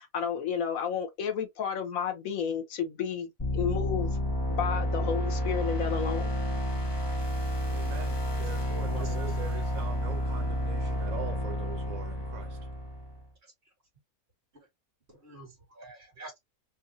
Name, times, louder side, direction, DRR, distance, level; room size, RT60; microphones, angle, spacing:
voice 1, 0.0-4.2 4.5-6.3, left 7 dB, 70° left, 1.2 m, -32 dB
sound 1, 3.4-13.2, equal, 20° left, 1.0 m, -30 dB
voice 2, 7.7-12.6, right 8 dB, 80° right, 1.2 m, -42 dB
voice 3, 8.8-9.5 15.2-16.5, right 2 dB, 50° right, 2.2 m, -46 dB
3.9 x 2.5 x 2.6 m
omnidirectional pair, 1.5 m